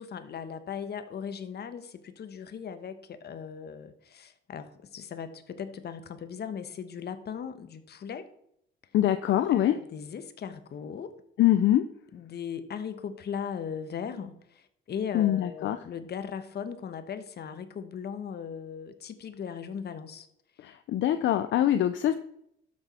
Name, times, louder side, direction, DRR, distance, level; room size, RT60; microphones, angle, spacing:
voice 1, 0.0-8.3 9.5-11.1 12.1-20.3 21.1-21.3, left 7 dB, 55° left, 10 dB, 1.2 m, -38 dB
voice 2, 8.9-9.8 11.4-11.8 15.1-15.8 20.6-22.1, left 12 dB, 70° left, 10 dB, 0.6 m, -24 dB
12.5 x 6.3 x 4.3 m, 0.74 s
cardioid pair, 90°, 20 cm